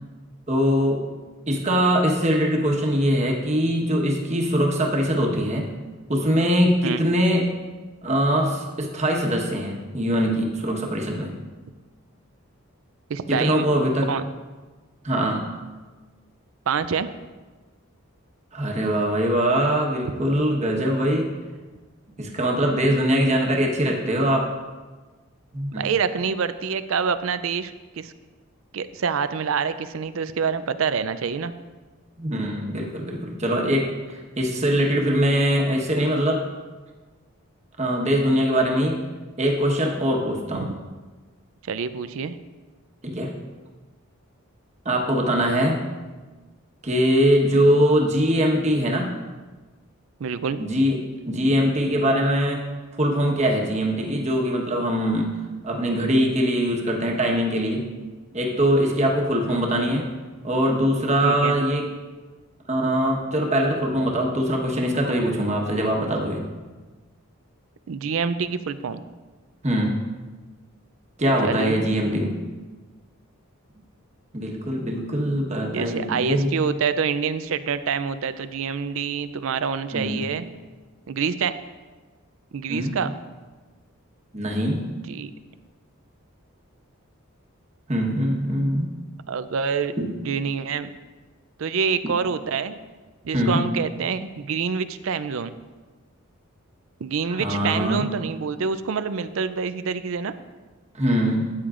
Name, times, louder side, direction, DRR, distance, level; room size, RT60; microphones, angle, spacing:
voice 1, 0.5-1.0 1.5-5.7 6.1-7.5 8.0-11.3 13.3-14.1 15.0-15.5 18.5-21.3 22.2-24.5 25.5-25.8 32.2-36.4 37.8-39.0 39.4-40.7 43.0-43.3 44.8-45.8 46.8-49.1 50.6-51.0 51.3-52.6 53.0-55.3 55.6-57.9 58.3-60.1 60.4-61.9 62.7-66.4 69.6-70.0 71.2-72.4 74.3-76.5 79.9-80.3 82.7-83.0 84.3-84.9 87.9-88.9 90.0-90.1 92.0-92.1 93.3-93.7 97.4-98.1 100.9-101.4, equal, 30° right, 0 dB, 1.2 m, -22 dB
voice 2, 13.1-13.7 14.1-14.2 16.7-17.1 25.8-28.1 28.7-31.5 40.6-40.7 41.7-42.4 50.2-50.6 61.2-61.5 67.9-69.0 71.4-71.8 75.7-80.5 81.1-81.5 82.5-83.1 85.1-85.3 89.3-89.9 90.2-90.9 91.6-92.8 93.2-95.6 97.0-100.3, right 6 dB, 70° right, 12 dB, 0.4 m, -26 dB
13.0 x 8.8 x 2.5 m, 1.3 s
head